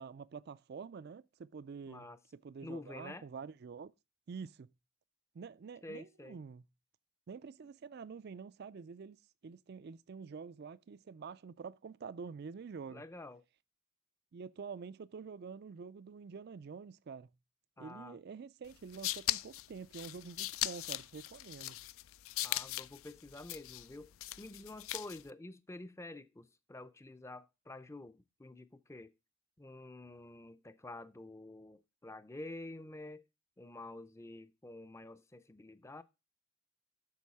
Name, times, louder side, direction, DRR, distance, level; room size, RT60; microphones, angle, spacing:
voice 1, 0.0-2.1 2.4-3.9 4.3-4.7 5.3-6.6 7.3-13.0 14.3-17.3 17.8-21.8, right 5 dB, 50° right, 0.4 m, -47 dB
voice 2, 1.9-2.2 2.6-3.3 5.8-6.4 12.9-13.4 17.8-18.2 22.4-24.1 24.4-29.1 29.6-33.2 33.6-36.0, left 2 dB, 15° left, 0.5 m, -49 dB
sound 1, 18.7-25.3, left 16 dB, 75° left, 0.4 m, -39 dB
8.4 x 6.2 x 4.7 m
head